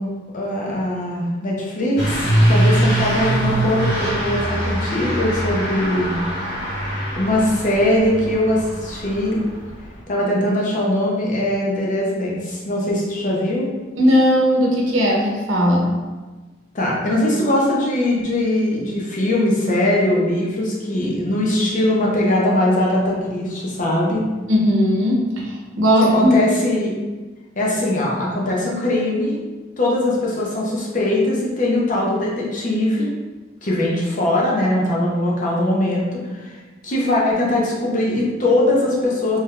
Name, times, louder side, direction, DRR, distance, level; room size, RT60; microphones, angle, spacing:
voice 1, 0.0-6.2 7.1-9.4 10.1-13.7 16.7-24.2 26.0-26.9 27.6-29.4 29.8-33.1 33.6-36.6 36.8-39.4, left 1 dB, 40° left, -4 dB, 0.7 m, -21 dB
Truck / Accelerating revving vroom, 2.0-9.9, right 1 dB, 65° left, 1.3 m, -22 dB
voice 2, 14.0-15.9 24.5-26.3, equal, 90° right, -2 dB, 0.7 m, -17 dB
3.4 x 2.8 x 2.3 m, 1.3 s
head